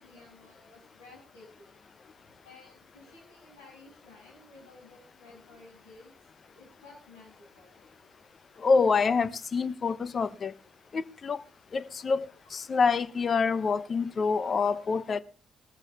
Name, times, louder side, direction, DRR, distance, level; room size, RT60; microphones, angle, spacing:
voice 1, 0.0-1.7 2.4-6.1 6.5-7.8, left 3 dB, 75° left, 7.5 m, -54 dB
voice 2, 8.6-10.5 10.9-11.4 11.7-15.2, left 5 dB, 40° left, 0.8 m, -26 dB
20.5 x 14.0 x 3.4 m
figure-of-eight pair, 45°, 0 cm